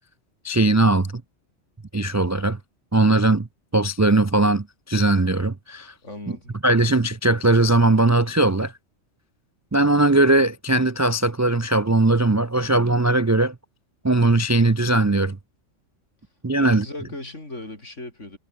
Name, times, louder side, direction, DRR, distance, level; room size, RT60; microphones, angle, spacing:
voice 1, 0.4-1.2 1.9-2.6 2.9-3.5 3.7-5.9 6.6-8.7 9.7-13.5 14.0-15.4 16.4-16.8, right 2 dB, 25° right, 0.3 m, -19 dB
voice 2, 6.0-6.6 16.6-18.4, left 2 dB, 75° left, 6.1 m, -37 dB
omnidirectional pair, 1.3 m